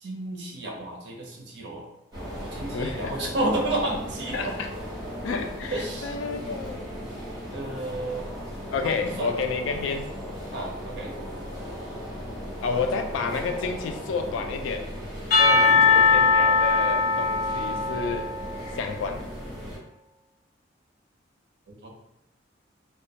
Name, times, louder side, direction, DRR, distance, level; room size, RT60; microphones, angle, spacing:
voice 1, 0.0-1.9 2.4-4.6 5.7-6.2 7.5-8.3 8.8-9.3 10.5-11.2 15.6-15.9 21.7-21.9, right 1 dB, 60° right, -1 dB, 0.6 m, -31 dB
sound 1, 2.1-19.8, equal, 20° right, 0.8 m, -37 dB
voice 2, 2.7-3.1 4.3-4.7 5.2-6.9 8.7-10.1 12.6-14.9 15.4-18.3 18.7-19.3, left 4 dB, 80° left, 6 dB, 0.3 m, -30 dB
Percussion / Church bell, 15.3-19.0, left 4 dB, 55° left, 1.0 m, -21 dB
2.2 x 2.1 x 2.7 m, 0.82 s
head